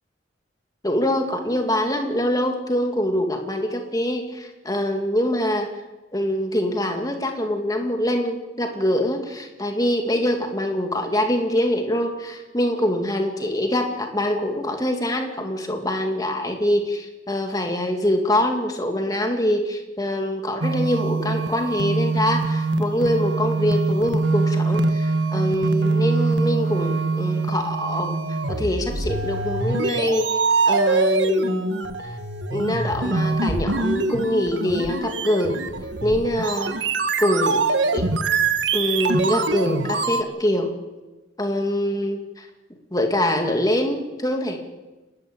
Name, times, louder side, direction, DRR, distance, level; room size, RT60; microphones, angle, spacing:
voice 1, 0.8-5.7 6.1-28.2 28.5-31.8 32.5-35.6 36.0-36.7 37.2-37.7 37.9-38.1 38.7-40.7 41.4-42.5 42.9-44.6, left 1 dB, 20° left, 4 dB, 2.4 m, -24 dB
sound 1, 20.6-40.2, right 3 dB, 80° right, 1.5 m, -24 dB
29.5 x 12.0 x 9.1 m, 1.1 s
head